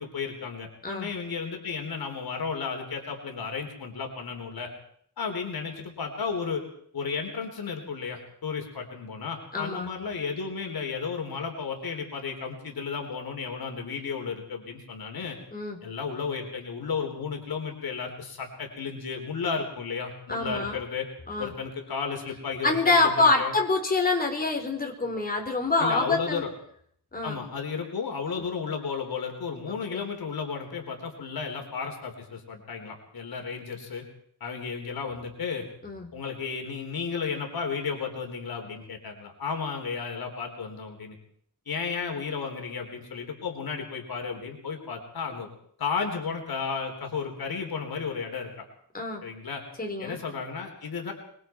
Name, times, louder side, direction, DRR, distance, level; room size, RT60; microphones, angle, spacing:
voice 1, 0.0-4.7 5.2-6.6 6.9-15.4 15.8-21.1 21.4-23.5 25.8-26.5 27.2-34.1 34.4-35.7 36.1-41.2 41.7-45.5 45.8-48.7 49.2-49.6 50.0-51.1, left 5 dB, 65° left, 3 dB, 4.0 m, -33 dB
voice 2, 9.5-9.9 15.5-15.8 20.3-20.8 21.3-21.5 22.6-26.4 27.1-27.4 29.7-30.0 35.8-36.1 48.9-49.2 49.8-50.2, left 3 dB, 20° left, 2 dB, 4.1 m, -26 dB
25.0 x 22.5 x 4.7 m, 0.64 s
wide cardioid pair, 130°, 40 cm